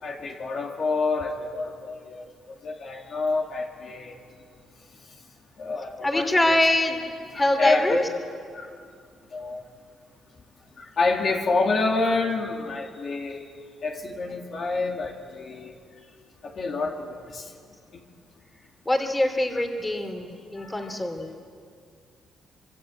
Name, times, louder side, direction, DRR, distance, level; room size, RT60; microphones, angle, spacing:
voice 1, 0.0-2.3 2.6-4.2 5.6-6.6 7.3-8.0 8.5-8.7 9.3-9.6 10.8-13.5 13.8-15.7 16.4-17.5 17.9-18.0 20.6-21.0, left 3 dB, 50° left, 1 dB, 2.8 m, -28 dB
voice 2, 6.0-7.0 7.3-8.0 11.4-11.5 18.8-21.3, left 1 dB, 15° left, 5 dB, 3.3 m, -24 dB
25.5 x 25.0 x 8.8 m, 2.2 s
cardioid pair, 100°, 0 cm